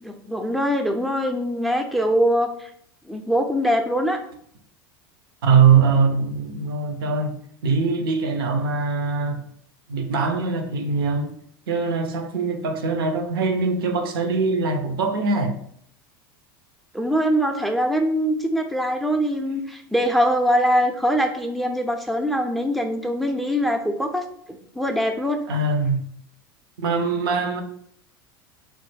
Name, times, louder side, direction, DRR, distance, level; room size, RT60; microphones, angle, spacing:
voice 1, 0.0-2.7 3.1-4.2 16.9-25.4, equal, ahead, 0.4 m, -23 dB
voice 2, 5.4-9.4 9.9-11.3 11.7-15.6 25.5-26.1 26.8-27.6, right 5 dB, 80° right, 0.5 m, -22 dB
3.1 x 2.1 x 3.2 m
hypercardioid pair, 95°, 12 cm